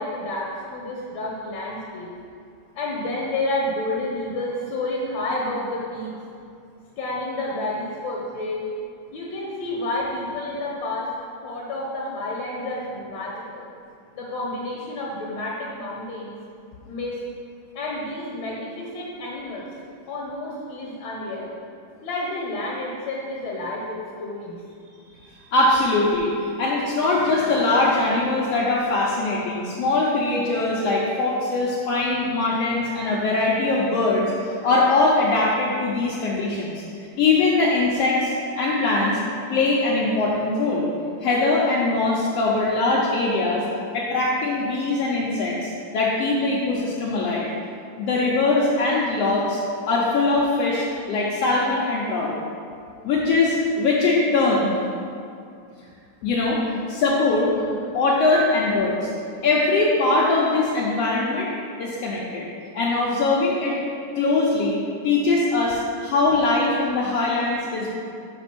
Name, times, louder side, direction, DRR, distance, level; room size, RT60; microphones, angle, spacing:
voice 1, 0.0-2.1 2.8-6.1 7.0-8.7 9.1-11.2 11.4-13.7 14.1-16.3 16.9-17.2 17.8-19.7 20.1-21.5 22.0-24.6 57.5-57.8 58.5-58.6, left 2 dB, 70° left, -3 dB, 1.8 m, -30 dB
voice 2, 25.2-26.3 26.6-36.8 37.2-39.2 39.5-40.9 41.2-43.6 43.9-47.4 47.9-49.6 49.9-52.3 53.0-54.7 56.2-56.6 56.9-57.5 57.9-59.1 59.4-61.5 61.8-62.5 62.7-63.8 64.1-64.8 65.0-67.9, left 3 dB, 85° left, -5 dB, 1.4 m, -21 dB
5.9 x 5.3 x 5.9 m, 2.4 s
omnidirectional pair, 3.8 m